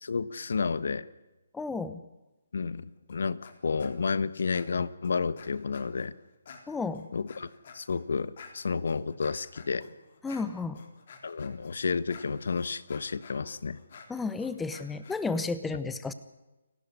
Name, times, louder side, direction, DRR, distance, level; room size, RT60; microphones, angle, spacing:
voice 1, 0.0-1.0 2.5-6.1 7.1-9.8 11.2-13.8, left 5 dB, 70° left, 17 dB, 1.2 m, -31 dB
voice 2, 1.5-2.0 6.7-7.1 10.2-10.8 14.1-16.1, left 4 dB, 5° left, 13 dB, 0.9 m, -32 dB
sound 1, 3.1-3.5 3.8-4.1 4.5-6.1 6.5-15.2, left 5 dB, 50° left, 3.6 m, -51 dB
29.0 x 13.0 x 9.7 m, 1.0 s
hypercardioid pair, 155°, 0 cm